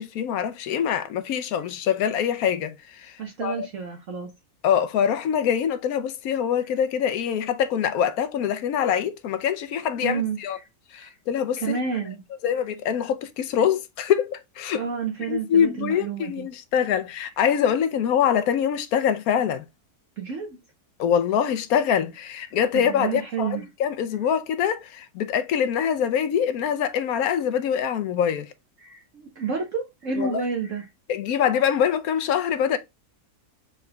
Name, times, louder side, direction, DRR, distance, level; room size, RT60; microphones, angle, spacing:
voice 1, 0.0-3.7 4.6-10.6 10.9-11.8 12.4-14.8 15.3-19.6 21.0-28.5 30.2-30.4 31.1-32.8, left 8 dB, 70° left, 1.0 m, -24 dB
voice 2, 3.2-4.3 10.0-10.7 11.0-11.1 11.6-12.2 14.8-16.5 20.2-20.6 22.7-23.6 28.8-30.9, right 5 dB, 55° right, 1.2 m, -30 dB
4.8 x 4.8 x 2.3 m
omnidirectional pair, 1.7 m